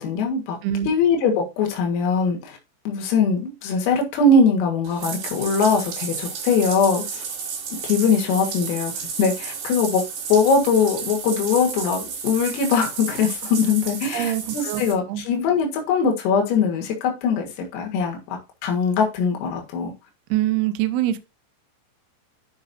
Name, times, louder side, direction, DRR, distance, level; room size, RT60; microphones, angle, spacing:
voice 1, 0.0-0.6 0.9-2.6 2.9-7.2 7.8-10.0 10.3-19.9, left 4 dB, 85° left, 4.5 m, -21 dB
Bathtub (filling or washing), 4.8-14.9, right 6 dB, 60° right, 4.6 m, -32 dB
voice 2, 14.1-14.8 15.1-15.2 20.3-21.2, right 13 dB, 85° right, 2.2 m, -24 dB
12.0 x 5.4 x 2.7 m
omnidirectional pair, 5.8 m